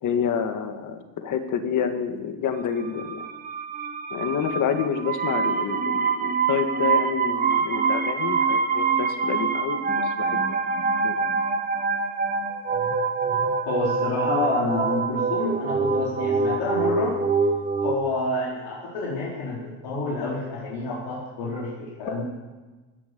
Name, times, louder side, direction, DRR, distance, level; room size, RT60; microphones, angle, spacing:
voice 1, 0.0-3.2 4.1-10.4 11.0-11.2 22.1-22.2, left 7 dB, 40° left, 7 dB, 1.8 m, -28 dB
sound 1, 2.8-18.0, right 5 dB, 20° right, 1.1 m, -25 dB
voice 2, 13.7-17.2 17.8-22.2, left 2 dB, 70° left, -5 dB, 4.4 m, -28 dB
17.0 x 11.0 x 6.9 m, 1.2 s
cardioid pair, 140°, 45 cm